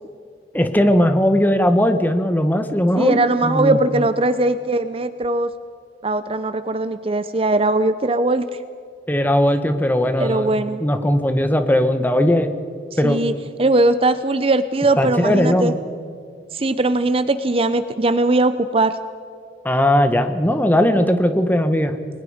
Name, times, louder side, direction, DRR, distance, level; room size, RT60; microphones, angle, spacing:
voice 1, 0.5-4.0 9.1-10.5 10.8-12.5 13.0-13.2 15.0-15.8 19.6-21.9, equal, 10° left, 8 dB, 1.4 m, -18 dB
voice 2, 3.0-5.5 6.0-8.5 10.2-10.8 13.0-13.3 13.6-15.7 16.5-19.0, right 2 dB, 30° right, 11 dB, 0.6 m, -19 dB
30.0 x 21.5 x 5.0 m, 2.4 s
head